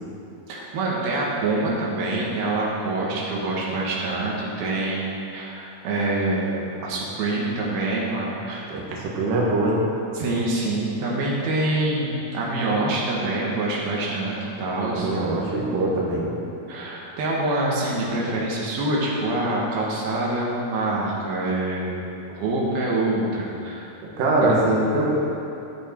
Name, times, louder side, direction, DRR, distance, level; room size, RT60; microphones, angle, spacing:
voice 1, 0.5-8.7 10.1-15.1 16.7-23.9 24.4-24.6, right 2 dB, 90° right, -4 dB, 3.4 m, -26 dB
voice 2, 8.7-9.8 14.9-16.3 24.0-25.2, right 2 dB, 70° right, -4 dB, 3.2 m, -22 dB
13.5 x 8.5 x 4.6 m, 2.7 s
omnidirectional pair, 4.2 m